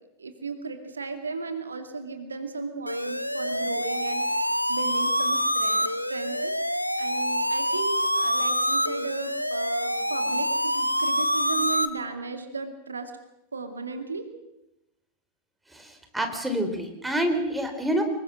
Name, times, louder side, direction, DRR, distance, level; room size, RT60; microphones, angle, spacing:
voice 1, 0.2-13.1 13.5-14.3, right 4 dB, 75° right, 7 dB, 2.3 m, -35 dB
sound 1, 2.9-11.9, equal, 90° left, 1.1 m, -26 dB
voice 2, 15.7-18.0, equal, 5° right, 6 dB, 4.0 m, -27 dB
26.0 x 22.0 x 6.1 m, 0.87 s
figure-of-eight pair, 90°, 0 cm